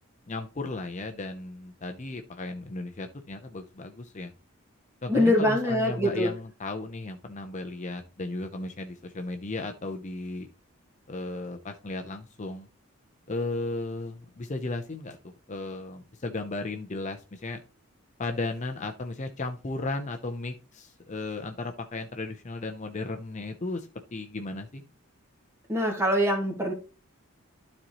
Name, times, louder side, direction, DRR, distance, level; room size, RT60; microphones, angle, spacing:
voice 1, 0.3-4.3 5.0-10.5 11.1-12.7 13.3-15.2 15.5-17.6 18.2-24.8, left 2 dB, 35° left, 6 dB, 0.6 m, -35 dB
voice 2, 5.1-6.3 25.7-26.7, left 1 dB, 10° right, 1 dB, 2.0 m, -24 dB
12.5 x 4.3 x 3.0 m, 0.32 s
head